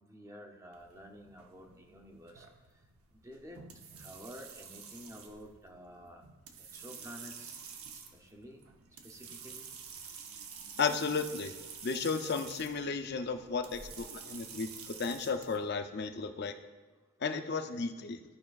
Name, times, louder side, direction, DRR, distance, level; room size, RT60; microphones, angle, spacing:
voice 1, 0.0-2.5 3.2-3.6 4.0-6.2 6.7-7.5 7.9-8.6 9.0-9.7, equal, 15° right, 2 dB, 0.6 m, -50 dB
sound 1, 0.7-15.6, right 6 dB, 80° right, 0.8 m, -49 dB
voice 2, 10.8-11.5 11.8-16.5 17.2-18.2, left 5 dB, 50° left, 8 dB, 0.5 m, -34 dB
13.0 x 5.5 x 2.4 m, 1.2 s
head